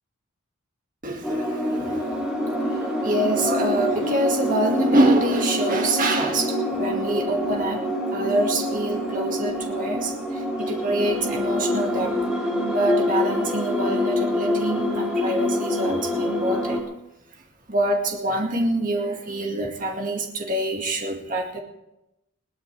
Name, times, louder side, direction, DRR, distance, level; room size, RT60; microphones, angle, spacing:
voice 1, 1.0-2.1 2.7-7.8 8.1-12.2 12.7-16.9 17.7-21.6, right 1 dB, 40° right, 2 dB, 2.1 m, -25 dB
sound 1, 1.2-16.8, left 1 dB, 5° right, 3.2 m, -26 dB
21.0 x 17.5 x 3.4 m, 0.92 s
head